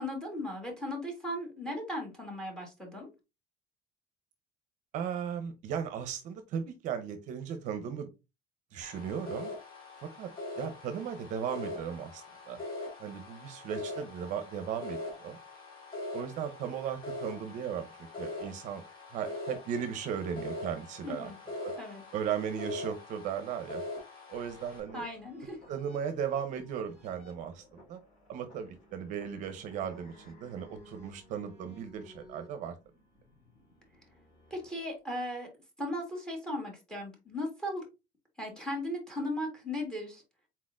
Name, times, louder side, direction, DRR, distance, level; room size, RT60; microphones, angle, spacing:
voice 1, 0.0-3.1 21.0-21.4 21.8-22.0 24.9-25.6 34.5-35.5 35.8-37.8 38.4-40.2, left 1 dB, 5° left, 2 dB, 1.4 m, -37 dB
voice 2, 4.9-8.1 8.7-9.5 10.2-10.3 10.6-12.6 13.0-15.4 16.1-17.9 18.2-18.8 19.1-21.3 21.6-21.7 22.1-23.8 24.3-25.0 25.7-28.0 28.3-32.7, right 8 dB, 50° right, 9 dB, 0.6 m, -36 dB
sound 1, 8.8-24.8, left 2 dB, 30° left, 2.0 m, -42 dB
sound 2, 24.3-35.3, left 1 dB, 50° left, 2.6 m, -57 dB
4.1 x 4.1 x 2.4 m, 0.25 s
cardioid pair, 165°, 16 cm